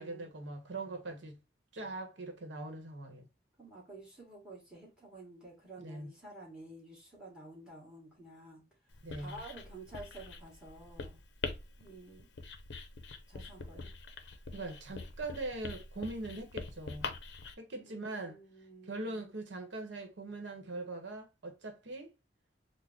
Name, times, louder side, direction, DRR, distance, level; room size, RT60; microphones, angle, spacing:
voice 1, 0.0-1.4 1.7-3.3 5.8-6.1 9.0-9.4 14.5-17.2 17.6-18.4 18.8-22.1, right 2 dB, 85° right, 0.9 m, -41 dB
voice 2, 3.6-8.6 9.2-11.2 11.8-12.3 13.3-13.9 17.8-19.2, right 2 dB, 5° right, 1.5 m, -51 dB
Writing, 8.9-17.5, left 4 dB, 70° left, 0.5 m, -44 dB
3.6 x 2.0 x 3.5 m
head